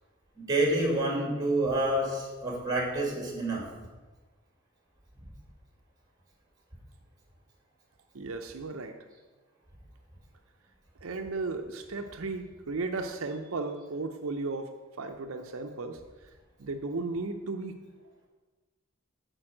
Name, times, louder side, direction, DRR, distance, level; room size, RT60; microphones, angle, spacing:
voice 1, 0.4-3.6, right 1 dB, 20° right, -1 dB, 2.2 m, -28 dB
voice 2, 8.1-9.0 11.0-14.7 15.0-16.3 16.6-17.8, right 3 dB, 75° right, 5 dB, 0.6 m, -35 dB
8.9 x 4.6 x 7.6 m, 1.3 s
head